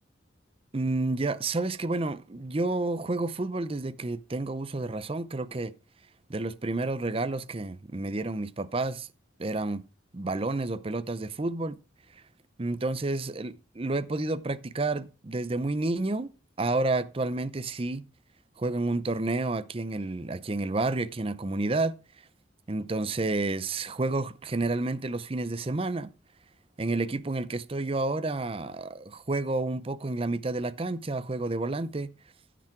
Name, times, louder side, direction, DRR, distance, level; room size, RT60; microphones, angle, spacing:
voice 1, 0.7-5.7 6.3-9.1 9.4-9.8 10.1-11.8 12.6-16.3 16.6-18.0 18.6-22.0 22.7-26.1 26.8-32.1, right 2 dB, 30° right, 0.6 m, -30 dB
15.0 x 6.1 x 4.5 m
head